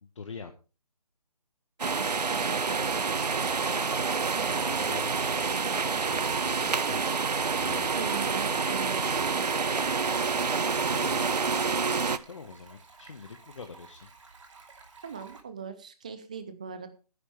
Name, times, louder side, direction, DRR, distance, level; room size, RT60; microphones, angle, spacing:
voice 1, 0.0-0.5 4.5-5.3 5.8-7.0 7.6-7.9 10.9-11.3 12.3-14.1, left 5 dB, 50° left, 6 dB, 1.4 m, -44 dB
voice 2, 1.8-3.2 8.0-9.4 15.0-16.9, right 6 dB, 10° right, 11 dB, 0.5 m, -40 dB
Stream, 1.8-15.4, right 4 dB, 50° right, 2.7 m, -53 dB
sound 1, 1.8-12.2, right 4 dB, 85° right, 0.9 m, -28 dB
16.0 x 10.0 x 3.3 m, 0.34 s
figure-of-eight pair, 165°, 20 cm